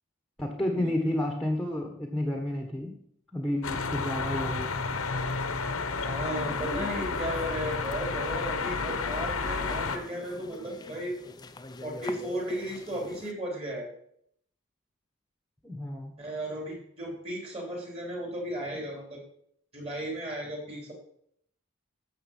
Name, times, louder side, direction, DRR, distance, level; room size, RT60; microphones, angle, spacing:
voice 1, 0.4-3.0 3.3-4.7 15.6-16.1, left 1 dB, ahead, 3 dB, 1.3 m, -31 dB
sound 1, 3.6-10.0, left 4 dB, 80° left, 1.1 m, -31 dB
voice 2, 6.1-11.2 11.8-13.9 16.2-19.2 19.7-20.9, equal, 30° right, 0 dB, 3.6 m, -35 dB
sound 2, 6.3-13.3, left 2 dB, 20° left, 0.5 m, -43 dB
12.5 x 7.4 x 5.5 m, 0.69 s
head